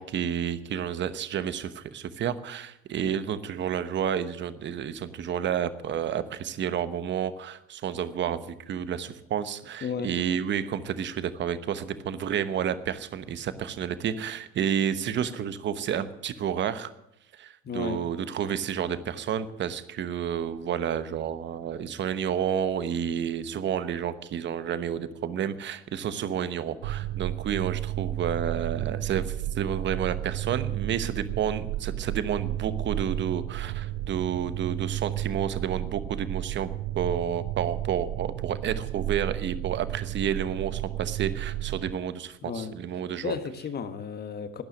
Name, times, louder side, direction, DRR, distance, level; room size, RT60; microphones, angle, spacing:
voice 1, 0.0-16.9 17.4-36.7 36.9-43.4, right 8 dB, 40° right, 1.1 m, -30 dB
voice 2, 9.8-10.1 17.6-18.0 42.4-42.7 43.2-44.6, left 6 dB, 35° left, 1.4 m, -33 dB
sound 1, 26.8-41.9, right 14 dB, 85° right, 0.7 m, -32 dB
12.0 x 10.0 x 9.9 m
cardioid pair, 145°, 29 cm